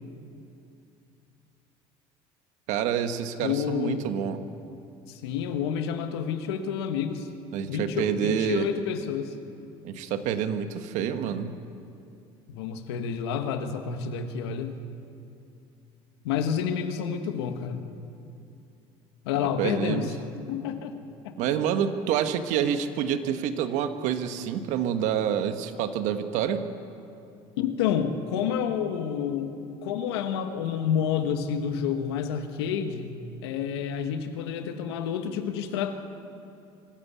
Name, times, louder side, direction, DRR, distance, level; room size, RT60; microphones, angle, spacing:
voice 1, 2.7-4.4 7.5-8.7 9.8-11.6 19.4-20.1 21.4-26.6, right 9 dB, 70° right, 9 dB, 1.3 m, -28 dB
voice 2, 3.4-4.0 5.1-7.3 7.7-9.3 12.5-14.8 16.2-17.8 19.2-20.1 20.5-21.0 21.2-21.3 27.6-36.0, left 8 dB, 90° left, 7 dB, 1.4 m, -29 dB
24.5 x 13.5 x 8.4 m, 2.6 s
supercardioid pair, 85°, 13 cm